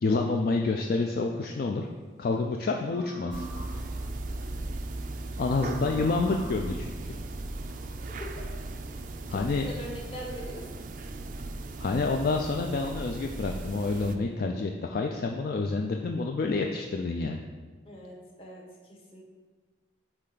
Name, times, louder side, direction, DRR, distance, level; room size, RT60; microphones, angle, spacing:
voice 1, 0.0-1.9 2.2-3.5 3.7-3.9 5.4-7.2 9.3-9.7 11.8-17.4, left 3 dB, 50° left, 2 dB, 0.3 m, -28 dB
sound 1, 0.8-1.6 2.7-4.2 5.5-8.0, right 1 dB, 90° left, 1.1 m, -46 dB
sound 2, 3.3-14.2, right 2 dB, 45° right, 0.3 m, -37 dB
voice 2, 9.3-10.6 17.8-19.2, equal, 30° left, -2 dB, 1.0 m, -42 dB
7.9 x 3.3 x 3.9 m, 1.4 s
head